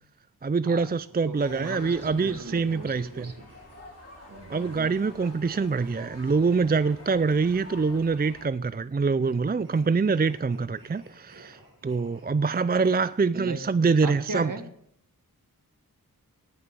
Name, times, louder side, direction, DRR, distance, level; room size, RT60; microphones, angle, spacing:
voice 1, 0.4-3.3 4.5-11.6 11.8-14.5, right 4 dB, 25° right, 0.5 m, -25 dB
voice 2, 1.2-3.5 4.3-4.9 13.3-13.6 14.0-14.6, right 3 dB, 60° right, 2.1 m, -37 dB
sound 1, 1.3-8.5, left 1 dB, 45° left, 5.6 m, -48 dB
sound 2, 1.8-4.1 4.8-8.1 9.2-13.1, right 1 dB, 85° right, 6.7 m, -55 dB
18.5 x 6.7 x 6.9 m
cardioid pair, 40°, 36 cm